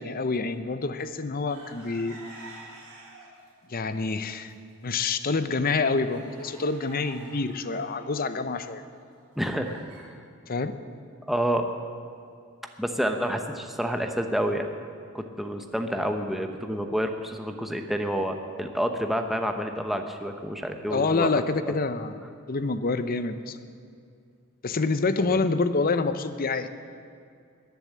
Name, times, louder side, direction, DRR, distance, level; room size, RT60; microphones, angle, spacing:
voice 1, 0.0-2.2 3.7-4.5 4.8-8.8 10.5-10.7 20.9-23.6 24.6-26.7, left 3 dB, 40° left, 11 dB, 0.6 m, -27 dB
chickens in coop, 1.5-3.5 3.9-4.5 5.0-5.1 5.4-10.0, right 2 dB, 75° right, 4.9 m, -49 dB
voice 2, 9.4-10.1 11.3-11.7 12.8-14.7 15.1-21.4 25.2-25.4, equal, ahead, 4 dB, 0.8 m, -29 dB
21.0 x 7.1 x 7.5 m, 2.4 s
head